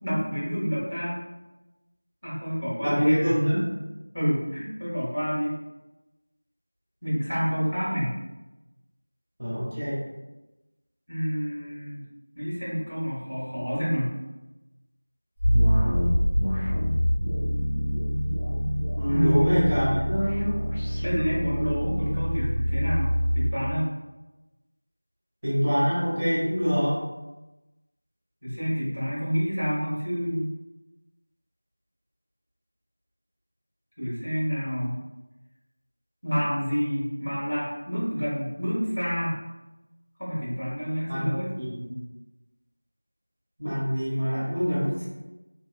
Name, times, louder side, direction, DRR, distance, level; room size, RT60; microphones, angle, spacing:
voice 1, 0.0-1.2 2.2-3.5 4.1-5.5 7.0-8.2 11.1-12.0 12.3-14.2 19.1-19.9 21.0-23.9 28.4-30.4 34.0-35.0 36.2-39.4 40.2-41.5, equal, 70° left, -8 dB, 1.4 m, -28 dB
voice 2, 2.8-3.6 9.4-10.0 18.9-20.5 25.4-27.0 41.1-41.3 41.6-41.9 43.6-45.1, equal, 30° right, -8 dB, 0.8 m, -25 dB
sound 1, 15.4-23.5, equal, 15° left, 0.6 m, -25 dB
2.8 x 2.1 x 2.3 m, 1.1 s
figure-of-eight pair, 175°, 0 cm